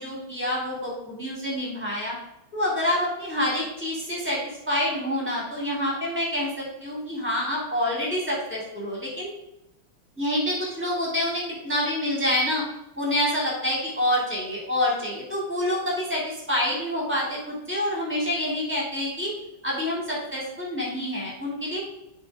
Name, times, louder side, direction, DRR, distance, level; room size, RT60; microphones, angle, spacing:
voice 1, 0.0-2.2 2.5-9.3 10.2-12.6 13.0-19.3 19.6-21.8, left 1 dB, 5° right, -4 dB, 3.0 m, -27 dB
7.1 x 5.7 x 5.0 m, 0.89 s
omnidirectional pair, 2.3 m